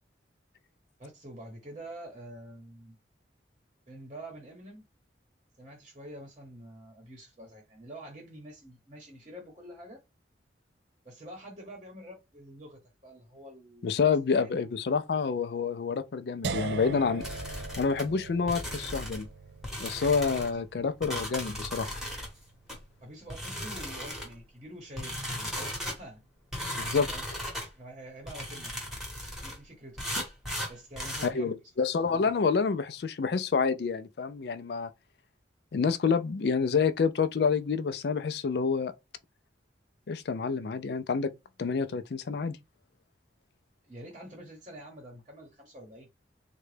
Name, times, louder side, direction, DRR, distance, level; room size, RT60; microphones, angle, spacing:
voice 1, 1.0-3.0 3.9-4.8 5.6-10.0 11.0-14.0 14.4-14.6 20.3-20.6 23.0-26.2 27.1-27.4 27.8-28.7 29.4-30.0 30.7-31.6 43.8-46.1, right 1 dB, 30° right, 0.9 m, -46 dB
voice 2, 13.8-17.2 17.8-19.3 19.8-22.0 26.8-27.1 31.2-34.9 35.7-38.9 40.1-41.3 41.6-42.6, left 5 dB, 60° left, 0.4 m, -28 dB
sound 1, 16.4-22.4, right 4 dB, 65° right, 0.3 m, -40 dB
sound 2, 17.2-18.1 18.5-19.3 19.6-20.5 21.0-22.3 22.7-22.8 23.3-24.4 25.0-26.0 26.5-27.7 28.3-29.6 30.0-31.3, equal, ahead, 1.0 m, -36 dB
3.7 x 2.2 x 3.2 m
head